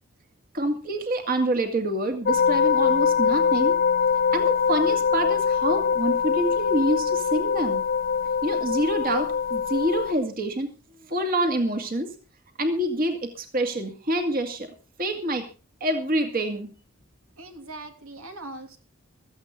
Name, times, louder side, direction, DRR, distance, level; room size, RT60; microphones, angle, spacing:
voice 1, 0.5-3.8 4.3-7.8 8.4-10.7 11.1-12.1 12.6-14.7 15.0-15.5 15.8-16.7, right 1 dB, 45° right, 5 dB, 2.2 m, -26 dB
sound 1, 2.3-10.1, left 6 dB, 45° left, 0.6 m, -23 dB
voice 2, 17.4-18.8, right 2 dB, 85° right, 5 dB, 2.9 m, -40 dB
16.0 x 14.0 x 3.9 m, 0.34 s
head